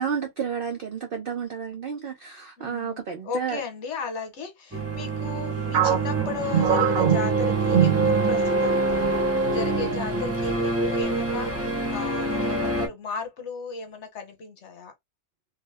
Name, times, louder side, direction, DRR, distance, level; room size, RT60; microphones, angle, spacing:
voice 1, 0.0-3.6, right 7 dB, 90° right, 0.5 m, -31 dB
voice 2, 2.6-9.1 9.5-14.9, left 5 dB, 50° left, 1.2 m, -36 dB
sound 1, 4.7-12.9, right 2 dB, 15° right, 0.5 m, -25 dB
sound 2, 5.7-8.6 8.9-9.1 9.8-10.2, right 9 dB, 50° right, 0.9 m, -24 dB
3.2 x 2.1 x 3.3 m
omnidirectional pair, 1.6 m